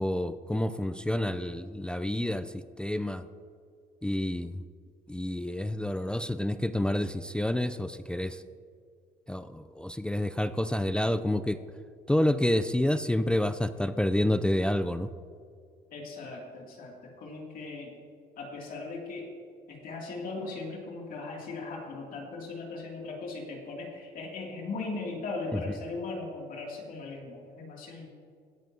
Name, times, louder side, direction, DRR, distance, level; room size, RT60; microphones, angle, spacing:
voice 1, 0.0-3.3 4.0-4.6 5.1-8.4 9.3-11.6 12.1-15.1 25.5-25.6, left 1 dB, 5° left, 12 dB, 0.3 m, -29 dB
voice 2, 15.9-17.9 18.4-19.3 19.7-28.1, left 3 dB, 60° left, -1 dB, 2.5 m, -38 dB
17.0 x 9.0 x 2.8 m, 2.2 s
cardioid pair, 110°, 17 cm